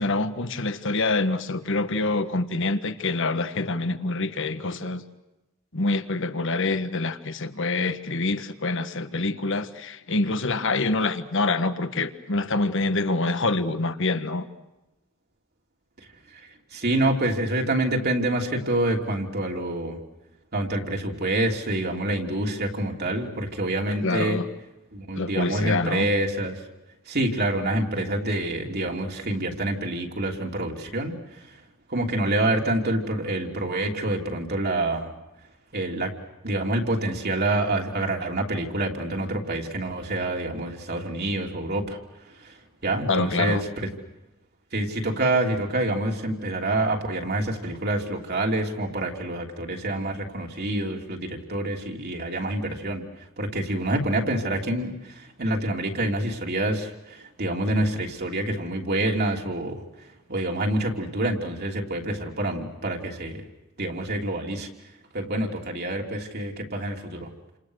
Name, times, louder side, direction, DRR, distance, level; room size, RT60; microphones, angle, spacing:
voice 1, 0.0-5.0 5.7-14.4 24.0-24.4 25.1-26.1 43.1-43.6, left 3 dB, 60° left, 10 dB, 1.5 m, -26 dB
voice 2, 16.3-20.0 20.5-24.4 24.9-26.6 27.1-31.6 31.9-35.1 35.7-36.1 36.4-42.0 42.2-43.9 44.7-53.0 53.4-63.4 63.8-64.7 65.1-67.3, right 1 dB, 50° right, 1 dB, 3.2 m, -27 dB
29.5 x 27.5 x 6.5 m, 1.0 s
head